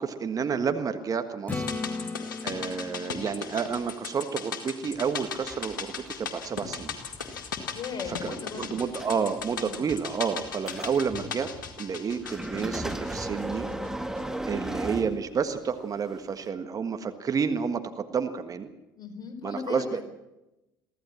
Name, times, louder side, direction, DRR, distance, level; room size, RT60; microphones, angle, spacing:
voice 1, 0.0-1.7 2.4-7.0 8.2-11.5 11.8-13.7 14.5-18.7 19.4-20.0, right 6 dB, 35° right, 8 dB, 1.5 m, -30 dB
sound 1, 1.5-13.9 14.1-14.2, left 6 dB, 75° left, 2.1 m, -38 dB
Acoustic guitar / Strum, 1.5-5.2 10.1-10.2, left 3 dB, 15° left, 1.8 m, -38 dB
voice 2, 1.7-2.0 7.7-8.7 9.6-9.9 18.9-20.0, left 6 dB, 40° left, 6 dB, 4.2 m, -38 dB
sound 2, 4.9-15.7 16.4-16.5, right 1 dB, 5° right, 1.5 m, -38 dB
23.5 x 15.0 x 7.5 m, 0.98 s
figure-of-eight pair, 55°, 11 cm